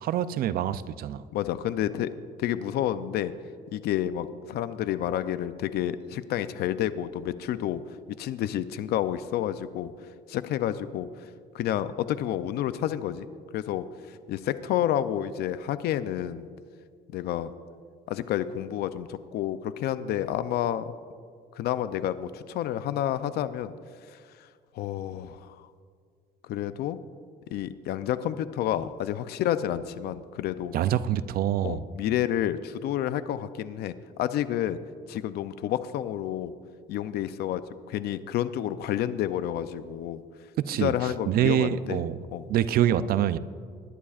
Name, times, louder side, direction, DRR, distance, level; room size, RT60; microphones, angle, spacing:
voice 1, 0.0-1.2 30.7-31.8 40.6-42.2 42.5-43.4, right 11 dB, 65° right, 15 dB, 0.5 m, -25 dB
voice 2, 1.3-2.1 2.4-3.3 3.7-7.8 8.2-9.9 10.3-11.1 11.5-13.3 13.5-16.5 17.1-17.5 18.1-20.9 21.6-23.7 24.1-24.2 24.7-25.6 26.4-27.0 27.5-30.8 31.6-34.8 35.1-36.5 36.9-37.6 37.9-40.2 40.8-42.0 42.3-42.5, left 11 dB, 70° left, 13 dB, 0.5 m, -29 dB
20.0 x 11.0 x 2.5 m, 2.1 s
cardioid pair, 110°, 17 cm